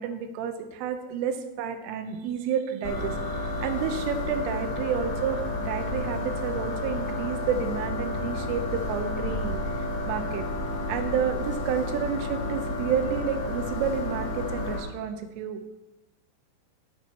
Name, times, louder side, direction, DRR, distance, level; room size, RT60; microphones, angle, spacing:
voice 1, 0.0-10.5 10.9-15.7, right 7 dB, 90° right, 8 dB, 3.5 m, -30 dB
sound 1, 2.8-14.8, left 2 dB, 70° left, 4.7 m, -31 dB
10.0 x 9.0 x 5.8 m, 1.0 s
omnidirectional pair, 5.6 m